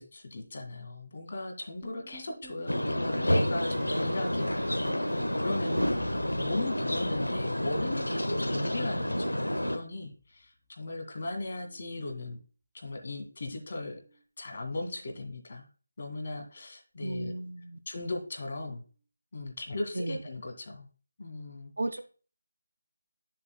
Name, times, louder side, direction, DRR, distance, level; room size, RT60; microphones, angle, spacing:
voice 1, 0.0-4.9 5.4-12.4 12.7-14.0 14.4-15.7 16.0-17.3 17.9-18.8 19.3-20.9 21.2-21.7, left 2 dB, 45° left, 3 dB, 2.1 m, -38 dB
sound 1, 1.8-8.6 8.9-10.5 11.4-11.8 12.1-12.4 13.9-14.2 14.6-14.8 16.4-16.5, right 1 dB, 10° right, 2.3 m, -50 dB
sound 2, 2.7-9.8, left 1 dB, 85° left, 1.3 m, -29 dB
voice 2, 7.7-8.7 17.0-17.8 19.9-20.2 21.8-22.0, right 2 dB, 65° right, 9 dB, 0.9 m, -36 dB
10.5 x 6.6 x 2.2 m, 0.38 s
figure-of-eight pair, 160°, 0 cm